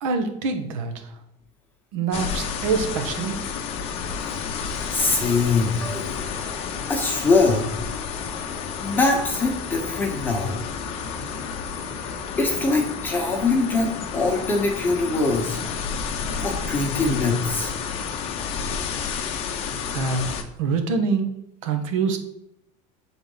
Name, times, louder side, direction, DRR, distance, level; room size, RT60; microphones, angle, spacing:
voice 1, 0.0-0.9 1.9-3.4 19.9-20.3 20.6-21.3 21.6-22.2, right 4 dB, 85° right, 6 dB, 1.0 m, -25 dB
sound 1, 2.1-20.4, left 6 dB, 35° left, 0.6 m, -31 dB
voice 2, 4.9-6.2 6.9-7.6 8.8-10.6 12.4-15.6 16.4-17.7, left 3 dB, 10° left, 1 dB, 1.0 m, -23 dB
7.1 x 4.0 x 3.9 m, 0.79 s
cardioid pair, 165°, 17 cm